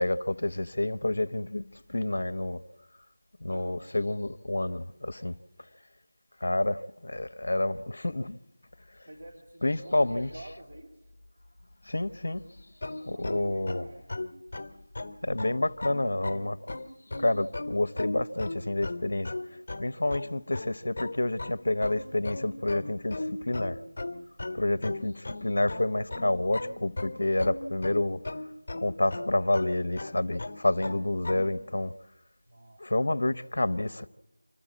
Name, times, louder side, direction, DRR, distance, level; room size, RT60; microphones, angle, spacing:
voice 1, 0.0-2.6 3.4-5.4 6.4-8.4 9.6-10.3 11.9-12.6 13.1-13.8 15.2-16.6 17.2-19.3 19.8-23.8 24.5-28.2 28.8-31.9 32.8-34.1, left 2 dB, 65° left, 0.8 m, -29 dB
voice 2, 3.5-3.9 8.8-11.1 13.0-14.1 24.5-24.7 32.5-32.8, right 1 dB, 45° right, 2.3 m, -49 dB
sound 1, 12.8-31.5, left 2 dB, 35° left, 1.0 m, -37 dB
26.0 x 14.0 x 7.4 m
figure-of-eight pair, 175°, 0 cm